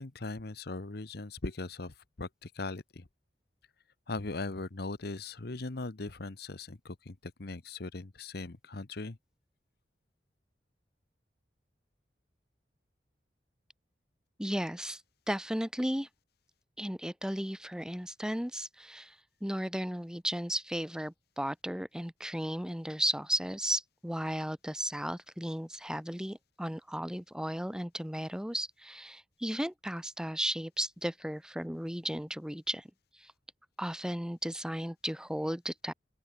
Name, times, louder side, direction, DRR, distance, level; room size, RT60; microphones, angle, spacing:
voice 1, 0.0-3.0 4.1-9.2, left 3 dB, 65° left, 1.1 m, -39 dB
voice 2, 14.4-15.0 15.3-16.1 16.8-19.2 19.4-32.9 33.2-33.3 33.8-35.9, equal, 5° right, 1.8 m, -35 dB
open air
head